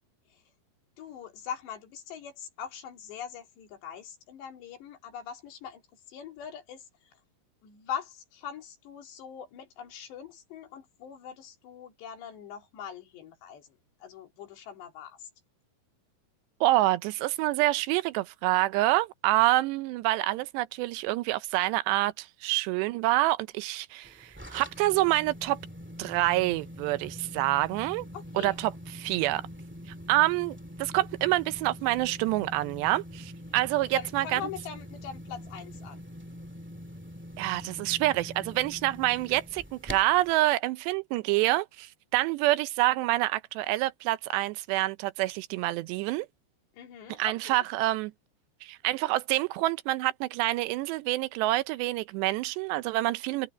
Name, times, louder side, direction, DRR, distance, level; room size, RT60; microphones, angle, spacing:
voice 1, 1.0-5.8 6.1-6.8 7.6-15.3 28.1-28.6 33.8-36.0 46.7-47.6, left 8 dB, 85° left, 5.2 m, -42 dB
voice 2, 16.6-25.6 26.0-28.1 28.4-29.5 30.1-34.4 37.4-46.3 47.1-48.1 48.6-53.5, right 17 dB, 85° right, 2.9 m, -27 dB
sound 1, 24.0-40.3, equal, 10° right, 0.6 m, -44 dB
omnidirectional pair, 4.9 m